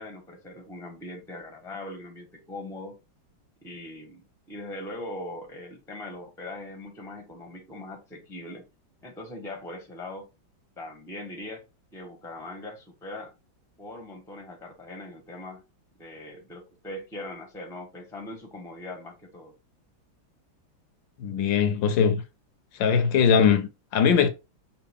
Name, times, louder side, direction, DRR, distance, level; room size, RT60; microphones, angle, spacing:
voice 1, 0.0-3.0 3.6-8.6 9.0-10.3 10.8-11.6 11.9-13.3 13.8-15.6 16.0-19.5, left 1 dB, ahead, 0.8 m, -40 dB
voice 2, 21.2-22.2 22.8-24.3, left 7 dB, 75° left, 1.3 m, -21 dB
5.6 x 2.4 x 3.5 m
omnidirectional pair, 2.2 m